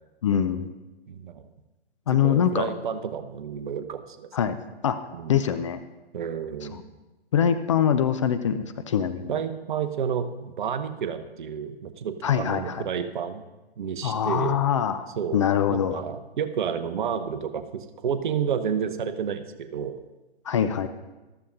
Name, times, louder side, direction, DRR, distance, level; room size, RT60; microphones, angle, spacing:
voice 1, 0.2-0.7 2.1-2.7 4.3-4.6 4.8-5.0 5.3-5.8 6.7-6.8 7.3-9.4 12.2-12.8 14.0-15.1 15.3-16.0 20.5-20.9, left 9 dB, 30° left, 9 dB, 0.4 m, -23 dB
voice 2, 1.1-1.5 2.2-4.3 5.1-5.4 6.1-6.9 9.3-13.4 13.8-14.6 15.2-15.4 15.7-20.0, right 7 dB, 50° right, 9 dB, 0.9 m, -30 dB
13.5 x 13.0 x 2.6 m, 1.1 s
figure-of-eight pair, 125°, 32 cm